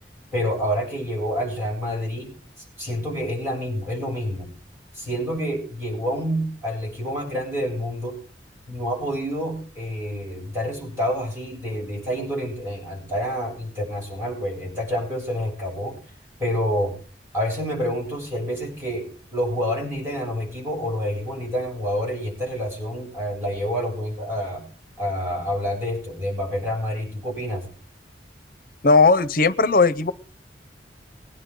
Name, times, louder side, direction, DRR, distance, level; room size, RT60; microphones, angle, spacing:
voice 1, 0.3-4.5 4.9-8.2 8.7-16.0 16.4-17.0 17.3-24.6 25.0-27.7, equal, 15° right, -2 dB, 7.4 m, -28 dB
voice 2, 28.8-30.1, left 3 dB, 50° left, 13 dB, 0.7 m, -17 dB
22.0 x 9.8 x 3.8 m, 0.39 s
head